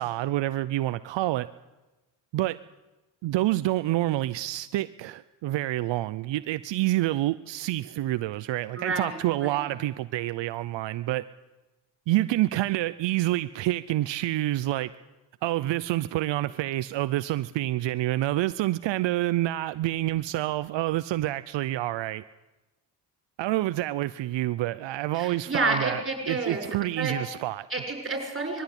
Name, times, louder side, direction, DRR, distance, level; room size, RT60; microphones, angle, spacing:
voice 1, 0.0-1.5 2.3-2.6 3.2-11.2 12.1-14.9 15.4-22.2 23.4-26.0 26.3-27.7, right 15 dB, 75° right, 14 dB, 0.7 m, -27 dB
voice 2, 8.8-9.7 25.1-26.7 27.0-27.1 27.7-28.6, right 3 dB, 30° right, 3 dB, 7.0 m, -30 dB
21.5 x 14.5 x 9.9 m, 1.1 s
cardioid pair, 95°, 44 cm